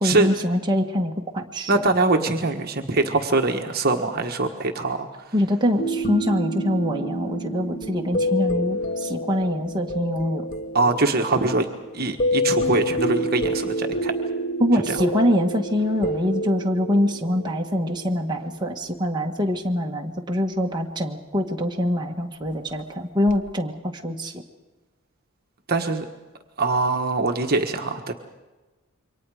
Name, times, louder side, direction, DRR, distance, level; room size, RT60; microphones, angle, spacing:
voice 1, 0.0-1.8 5.3-10.4 14.6-24.3, left 1 dB, 20° right, 0 dB, 1.7 m, -24 dB
voice 2, 1.7-5.1 10.7-11.7 11.9-14.1 14.9-15.0 25.7-26.0 26.6-28.1, right 3 dB, 45° right, 4 dB, 1.5 m, -23 dB
sound 1, 5.8-18.9 23.3-23.5, equal, 35° left, 1.2 m, -28 dB
28.0 x 24.0 x 5.0 m, 1.2 s
head